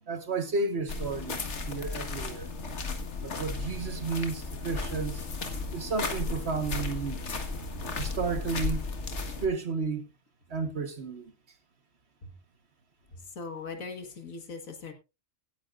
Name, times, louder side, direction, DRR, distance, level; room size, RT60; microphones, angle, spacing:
voice 1, 0.0-2.5 3.2-5.3 5.7-7.2 8.0-8.8 9.4-10.1 10.5-11.3, right 4 dB, 55° right, 1.5 m, -32 dB
sound 1, 0.9-9.5, left 3 dB, 60° left, 1.8 m, -34 dB
voice 2, 13.4-14.9, left 4 dB, 85° left, 2.0 m, -40 dB
16.5 x 10.0 x 2.5 m
omnidirectional pair, 1.4 m